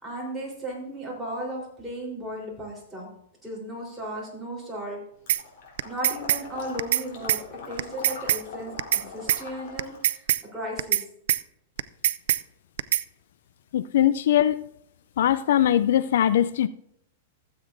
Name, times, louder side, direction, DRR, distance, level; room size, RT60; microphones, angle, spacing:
voice 1, 0.0-3.1 3.4-5.0 5.8-7.4 7.7-10.2 10.5-11.0, equal, 5° right, 3.7 m, -35 dB
Water / Liquid, 5.3-10.1, left 4 dB, 60° left, 3.6 m, -42 dB
sound 1, 5.3-5.4 5.8-6.4 6.8-7.0 7.3-7.4 7.8-8.4 8.8-9.0 9.3-9.4 9.8-10.4 10.8-11.0 11.3-11.4 11.8-12.4 12.8-13.0, right 11 dB, 70° right, 0.3 m, -23 dB
voice 2, 13.7-14.7 15.2-16.7, left 11 dB, 75° left, 0.3 m, -21 dB
15.5 x 7.9 x 2.6 m
supercardioid pair, 145°, 0 cm